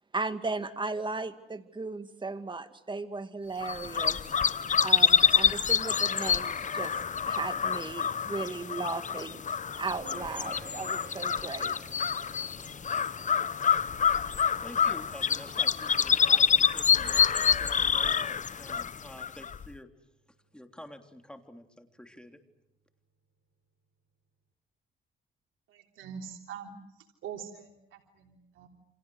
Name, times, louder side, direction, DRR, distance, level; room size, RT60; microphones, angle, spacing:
voice 1, 0.1-4.2 4.8-7.0 7.3-9.4 9.8-11.8, right 3 dB, 25° right, 9 dB, 2.4 m, -36 dB
sound 1, 3.6-19.7, left 7 dB, 40° left, 1.0 m, -27 dB
sound 2, 10.0-19.7, right 4 dB, 50° right, 6.9 m, -53 dB
voice 2, 14.6-19.9 20.5-22.4, left 1 dB, 5° left, 5 dB, 3.4 m, -49 dB
voice 3, 25.7-26.7 27.2-28.7, right 7 dB, 80° right, 2 dB, 3.5 m, -43 dB
29.0 x 27.0 x 6.4 m, 0.82 s
cardioid pair, 90°, 20 cm